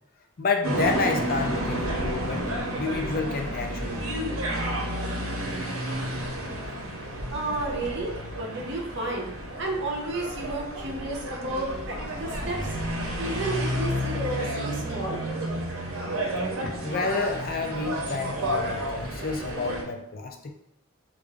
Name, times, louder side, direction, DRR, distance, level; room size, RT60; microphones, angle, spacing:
voice 1, 0.4-4.3 16.8-20.5, left 4 dB, 40° left, 3 dB, 0.4 m, -29 dB
sound 1, 0.6-19.8, right 1 dB, 80° right, 0.8 m, -31 dB
voice 2, 7.3-9.3 9.6-12.6 13.2-15.2, right 2 dB, 55° right, -1 dB, 0.8 m, -32 dB
3.5 x 2.5 x 3.4 m, 0.78 s
head